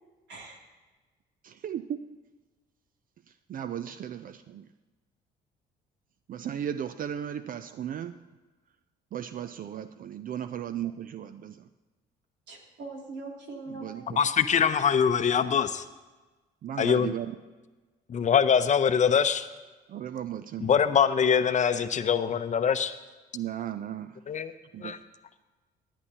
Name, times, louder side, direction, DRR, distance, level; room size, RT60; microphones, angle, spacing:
voice 1, 0.3-0.6 9.4-9.5 12.5-14.2 14.7-15.0, right 3 dB, 75° right, -1 dB, 2.8 m, -42 dB
voice 2, 1.4-2.1 3.5-4.7 6.3-8.2 9.1-11.7 13.8-14.3 16.6-17.4 19.9-20.7 23.3-24.2 24.7-25.0, right 10 dB, 50° right, 11 dB, 0.4 m, -36 dB
voice 3, 14.2-15.8 16.8-17.1 18.1-19.5 20.6-22.9 24.3-24.5 24.8-25.0, left 7 dB, 40° left, 11 dB, 0.7 m, -23 dB
17.5 x 9.8 x 2.9 m, 1.2 s
supercardioid pair, 75°, 18 cm